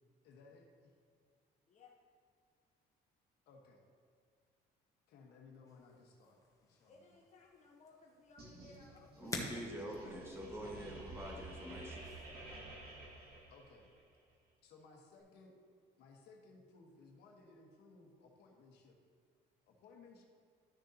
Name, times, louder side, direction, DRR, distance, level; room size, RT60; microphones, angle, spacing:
voice 1, 0.2-0.9 3.5-3.8 5.1-7.2 13.5-13.9 14.6-15.5 16.0-19.0 19.6-20.2, left 4 dB, 75° left, 1 dB, 1.4 m, -60 dB
sound 1, 5.7-12.6, left 2 dB, 20° left, 1.3 m, -51 dB
voice 2, 6.8-9.4, left 3 dB, 45° left, 0 dB, 0.8 m, -62 dB
sound 2, 8.4-14.0, right 2 dB, 65° right, 2.2 m, -51 dB
voice 3, 9.2-12.0, equal, 15° right, -1 dB, 1.5 m, -46 dB
12.5 x 6.5 x 2.8 m, 2.2 s
cardioid pair, 110°, 17 cm